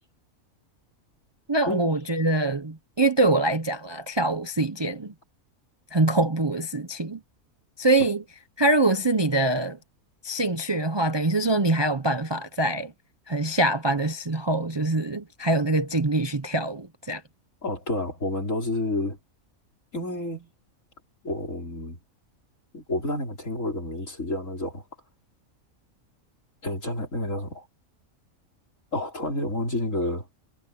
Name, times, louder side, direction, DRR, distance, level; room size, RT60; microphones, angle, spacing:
voice 1, 1.5-5.1 5.9-7.2 7.8-8.2 8.6-9.8 10.2-12.9 13.3-17.2, right 2 dB, 25° right, 0.6 m, -24 dB
voice 2, 17.6-19.2 19.9-20.5 21.2-22.0 22.7-24.8 26.6-27.7 28.9-30.3, left 1 dB, 65° left, 5.6 m, -29 dB
omnidirectional pair, 1.4 m